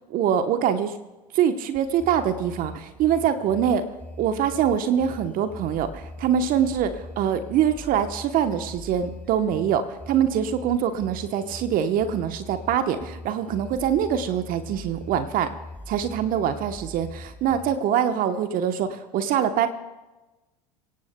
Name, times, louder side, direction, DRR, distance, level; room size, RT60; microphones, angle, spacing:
voice 1, 0.1-0.9 1.3-3.8 4.2-15.5 15.9-19.7, right 9 dB, 45° right, 9 dB, 1.0 m, -24 dB
sound 1, 1.7-17.7, left 1 dB, 5° left, 3.9 m, -42 dB
25.0 x 17.0 x 2.3 m, 1.1 s
hypercardioid pair, 80°, 21 cm